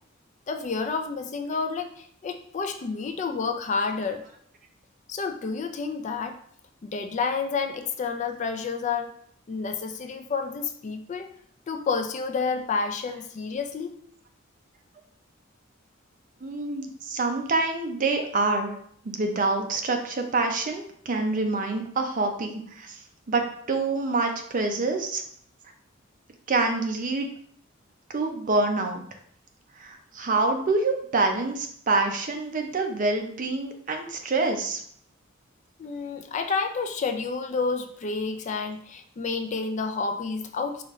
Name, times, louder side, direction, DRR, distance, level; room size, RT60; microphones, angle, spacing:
voice 1, 0.5-4.2 5.1-6.4 6.8-9.1 9.5-11.3 11.7-14.0 35.8-40.8, left 4 dB, 35° left, 6 dB, 0.4 m, -29 dB
voice 2, 16.4-18.8 19.0-23.0 23.3-25.2 26.5-27.3 28.1-29.0 29.8-34.8, right 3 dB, 45° right, 4 dB, 0.5 m, -26 dB
5.0 x 2.5 x 3.0 m, 0.62 s
head